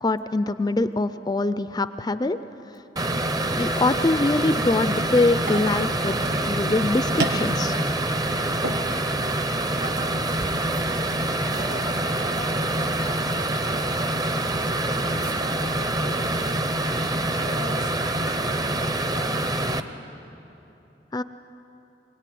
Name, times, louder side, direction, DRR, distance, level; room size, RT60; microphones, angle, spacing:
voice 1, 0.0-2.4 3.6-6.1 6.4-7.7 21.1-21.2, left 2 dB, 25° left, 11 dB, 0.5 m, -23 dB
sound 1, 3.0-19.8, right 1 dB, 20° right, 0.8 m, -26 dB
sound 2, 5.4-13.4, right 2 dB, 65° right, 1.3 m, -37 dB
voice 2, 9.6-14.2 14.7-19.5, right 1 dB, 45° right, 3 dB, 2.3 m, -41 dB
24.5 x 19.0 x 9.3 m, 3.0 s
head